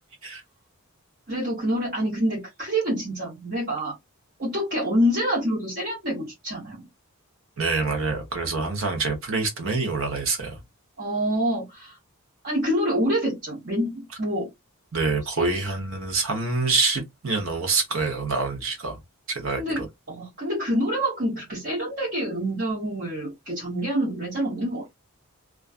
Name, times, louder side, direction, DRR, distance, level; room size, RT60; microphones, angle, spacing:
voice 1, 1.3-3.9 4.4-6.8 11.0-12.0 12.4-14.5 15.4-15.6 19.6-19.8 20.1-24.9, equal, 45° right, 1.1 m, -26 dB
voice 2, 7.6-10.6 14.9-19.0 19.3-19.9, right 4 dB, 60° right, 0.8 m, -26 dB
2.4 x 2.3 x 2.3 m
head